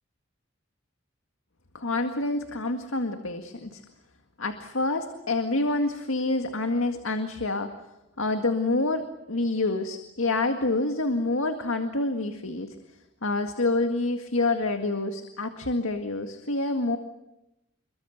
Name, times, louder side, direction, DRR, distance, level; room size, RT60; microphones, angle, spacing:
voice 1, 1.7-3.8 4.4-7.7 8.2-9.0 9.3-12.8 13.2-17.0, left 2 dB, 85° left, 6 dB, 1.9 m, -27 dB
28.0 x 23.0 x 8.1 m, 0.88 s
head